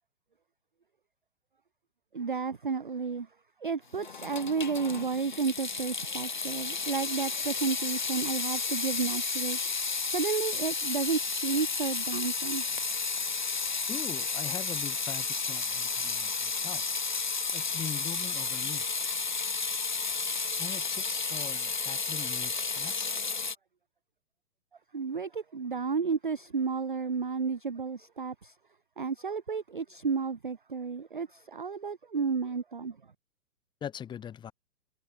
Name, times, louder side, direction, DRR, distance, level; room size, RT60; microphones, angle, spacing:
voice 1, 2.1-3.3 3.6-9.6 10.1-12.8 24.9-28.5 29.0-33.0, right 5 dB, 35° right, 0.4 m, -32 dB
Water tap faucet / Sink (filling or washing) / Drip, 3.9-23.5, left 4 dB, 35° left, 0.4 m, -32 dB
voice 2, 13.9-16.8 17.5-18.9 20.6-23.1 33.8-34.5, left 9 dB, 10° left, 4.2 m, -41 dB
hypercardioid pair, 170°, 46 cm